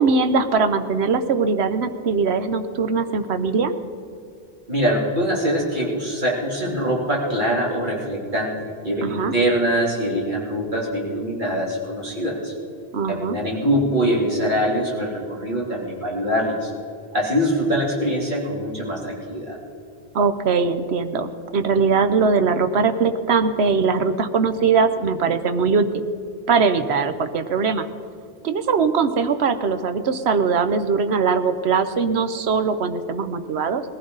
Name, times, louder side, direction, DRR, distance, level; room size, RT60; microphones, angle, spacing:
voice 1, 0.0-3.7 9.0-9.3 12.9-13.4 20.1-26.1 26.5-27.9 28.4-33.8, right 5 dB, 75° right, 10 dB, 1.1 m, -21 dB
voice 2, 4.7-12.5 13.1-16.7 17.1-19.6, equal, 45° right, -4 dB, 3.2 m, -23 dB
20.0 x 15.0 x 4.0 m, 2.5 s
omnidirectional pair, 1.1 m